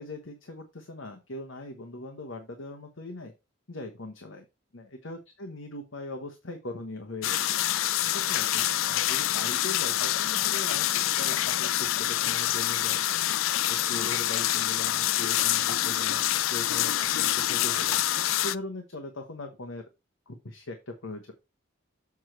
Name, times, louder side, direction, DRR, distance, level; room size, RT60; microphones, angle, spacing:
voice 1, 0.0-3.3 3.7-4.4 4.7-7.4 8.0-13.0 13.7-18.0 18.4-19.8 20.3-21.3, left 2 dB, 75° left, 4 dB, 1.3 m, -40 dB
sound 1, 7.2-18.6, left 13 dB, 90° left, 0.4 m, -26 dB
7.3 x 4.8 x 4.4 m, 0.25 s
head